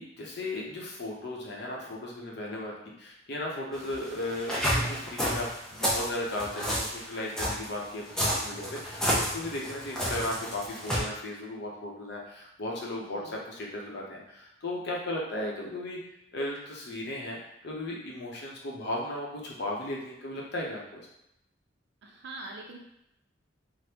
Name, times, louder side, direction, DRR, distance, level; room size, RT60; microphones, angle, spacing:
voice 1, 0.0-2.7 3.0-16.0 16.3-17.4 17.6-21.0, left 1 dB, 60° left, -2 dB, 0.7 m, -36 dB
sound 1, 3.7-11.0, equal, 5° left, 0.4 m, -30 dB
voice 2, 22.0-22.8, right 2 dB, 60° right, 1 dB, 0.4 m, -44 dB
3.3 x 2.0 x 2.8 m, 0.80 s
head